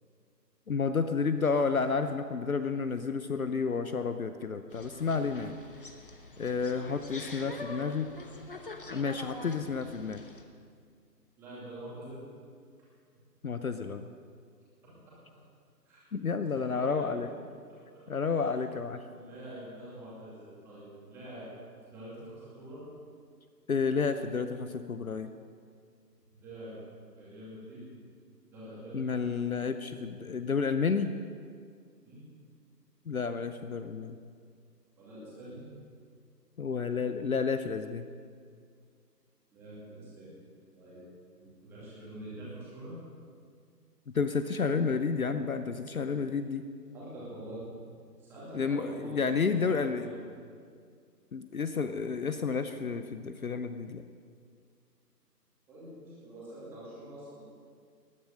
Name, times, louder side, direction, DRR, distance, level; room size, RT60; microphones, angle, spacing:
voice 1, 0.7-5.5 6.4-8.1 8.9-10.2 13.4-14.0 16.1-17.3 18.1-19.0 23.7-25.3 28.9-31.1 33.1-34.2 36.6-38.1 44.1-46.6 48.5-50.1 51.3-54.0, left 5 dB, 55° left, 10 dB, 0.8 m, -31 dB
sound 1, 4.7-10.4, left 2 dB, 35° left, 0.9 m, -45 dB
voice 2, 6.4-7.0 7.6-7.8 11.4-12.2 15.8-16.0 16.5-17.3 17.9-18.5 19.0-21.5 21.8-22.8 26.3-26.8 27.2-27.9 28.5-29.0 32.0-32.2 35.0-35.6 39.5-40.3 40.7-41.0 41.3-42.9 46.9-47.6 48.2-50.2 55.7-57.4, right 1 dB, 5° right, -9 dB, 2.4 m, -46 dB
19.5 x 9.2 x 6.4 m, 2.1 s
figure-of-eight pair, 160°, 50 cm